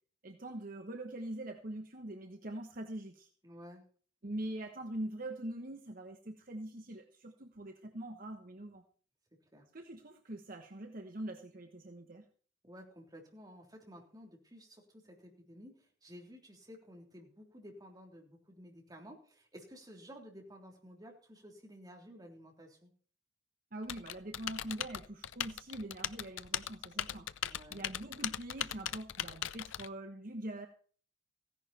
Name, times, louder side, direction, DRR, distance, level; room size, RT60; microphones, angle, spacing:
voice 1, 0.2-3.3 4.2-8.8 9.7-12.2 23.7-27.3 27.7-30.7, right 1 dB, 45° right, 5 dB, 1.2 m, -43 dB
voice 2, 3.4-3.8 9.5-9.7 12.6-22.9 27.5-27.8, equal, 20° right, 1 dB, 3.4 m, -53 dB
Typing, 23.9-29.9, left 10 dB, 90° left, 0.6 m, -39 dB
16.0 x 10.5 x 4.3 m, 0.43 s
head